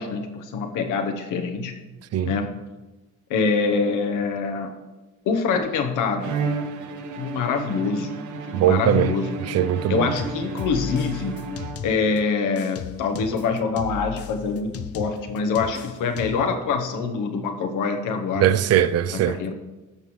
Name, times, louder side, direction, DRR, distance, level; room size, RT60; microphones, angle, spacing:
voice 1, 0.0-1.7 2.2-2.6 3.3-4.7 5.3-6.3 7.2-8.1 8.5-9.3 9.9-11.3 11.8-18.5 19.1-19.5, left 5 dB, 90° left, 0.9 m, -25 dB
Bowed string instrument, 6.2-12.2, right 4 dB, 75° right, 0.8 m, -33 dB
voice 2, 8.5-9.1 9.4-10.1 18.4-19.4, right 10 dB, 55° right, 0.4 m, -20 dB
sound 1, 10.2-12.2 12.6-16.6, left 9 dB, 50° left, 0.5 m, -36 dB
13.5 x 5.4 x 3.1 m
cardioid pair, 90°, 30 cm